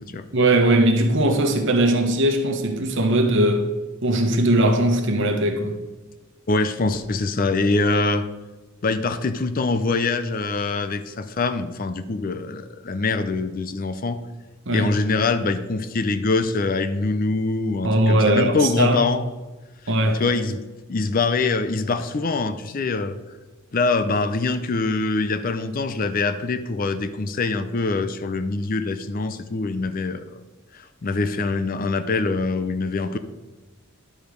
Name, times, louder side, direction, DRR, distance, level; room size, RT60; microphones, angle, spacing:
voice 1, 0.3-3.7 4.0-5.8 14.7-14.9 17.8-19.0 19.9-20.2, right 1 dB, 55° right, 1.1 m, -19 dB
voice 2, 6.5-8.3 8.8-14.2 14.7-19.2 20.2-20.6 20.9-23.2 23.7-30.4 30.7-33.2, left 3 dB, 40° left, 0.5 m, -24 dB
11.0 x 5.0 x 5.2 m
head